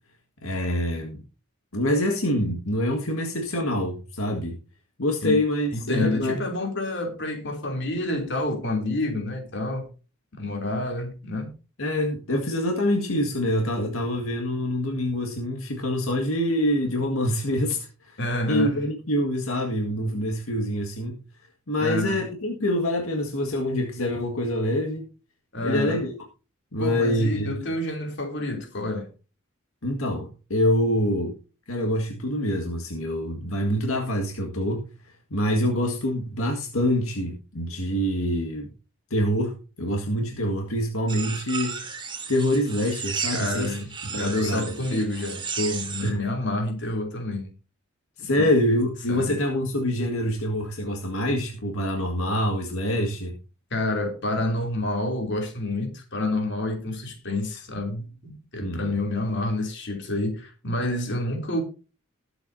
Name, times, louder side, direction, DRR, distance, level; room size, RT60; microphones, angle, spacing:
voice 1, 0.4-1.2 1.7-4.6 5.0-6.4 11.8-18.2 18.5-21.2 21.7-25.1 25.6-26.1 26.7-27.5 29.8-31.3 31.7-34.9 35.3-38.7 39.1-42.0 42.3-43.7 44.1-45.0 46.0-46.2 48.2-53.3 58.6-58.9, equal, 85° left, 1.9 m, -25 dB
voice 2, 5.7-9.9 10.4-11.5 18.2-18.8 21.8-22.2 25.5-26.0 26.8-29.1 43.3-47.5 48.4-48.5 49.1-49.3 53.7-61.6, left 2 dB, 55° left, 3.0 m, -28 dB
sound 1, 41.1-46.1, right 6 dB, 25° right, 1.8 m, -34 dB
20.0 x 8.0 x 2.7 m
head